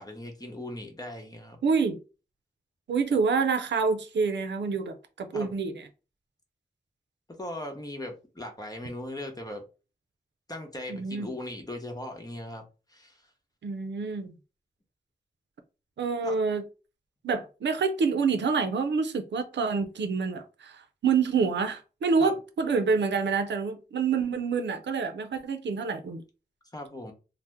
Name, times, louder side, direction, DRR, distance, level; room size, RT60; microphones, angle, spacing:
voice 1, 0.0-1.6 5.3-5.5 7.4-9.6 10.5-12.6 12.9-13.2 16.2-16.4 22.2-22.3 26.7-27.1, left 1 dB, 20° left, 0.9 m, -38 dB
voice 2, 1.6-2.0 2.9-5.8 10.9-11.3 13.6-14.3 16.0-16.6 17.2-26.2, right 5 dB, 90° right, 0.5 m, -27 dB
2.7 x 2.0 x 3.4 m
cardioid pair, 50°, 18 cm